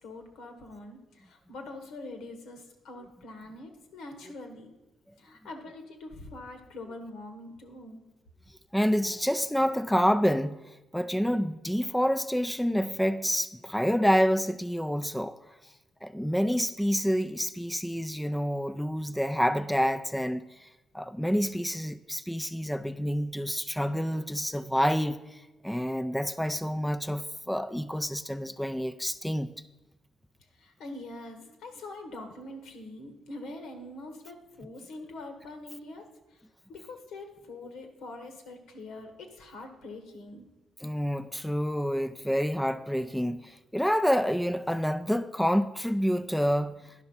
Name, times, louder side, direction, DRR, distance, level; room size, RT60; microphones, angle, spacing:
voice 1, 0.0-4.7 5.2-8.0 30.6-36.0 36.7-40.5, left 2 dB, 80° left, 1.5 m, -44 dB
voice 2, 8.7-10.6 10.9-15.4 16.0-20.7 20.9-29.5 40.8-46.9, equal, 5° left, 0.4 m, -28 dB
10.5 x 5.7 x 5.5 m
cardioid pair, 90°, 0 cm